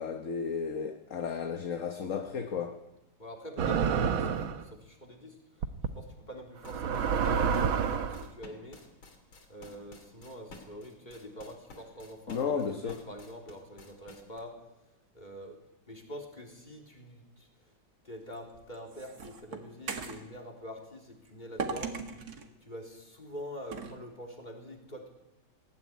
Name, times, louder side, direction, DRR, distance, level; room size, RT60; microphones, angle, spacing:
voice 1, 0.0-2.8 12.3-12.9, left 6 dB, 45° left, 6 dB, 1.4 m, -33 dB
voice 2, 3.2-5.6 6.0-8.8 9.5-14.6 15.1-15.6 15.9-17.7 18.0-21.9 22.6-25.1, equal, 20° left, 1 dB, 3.8 m, -45 dB
sound 1, 3.6-4.6 5.6-5.9 6.6-8.2, right 7 dB, 85° right, 2.0 m, -28 dB
sound 2, 6.6-14.4, left 3 dB, 80° left, 3.7 m, -52 dB
sound 3, 18.3-20.3 21.6-22.5 23.7-24.0, right 5 dB, 50° right, 2.2 m, -38 dB
19.5 x 16.5 x 9.5 m, 0.94 s
omnidirectional pair, 2.1 m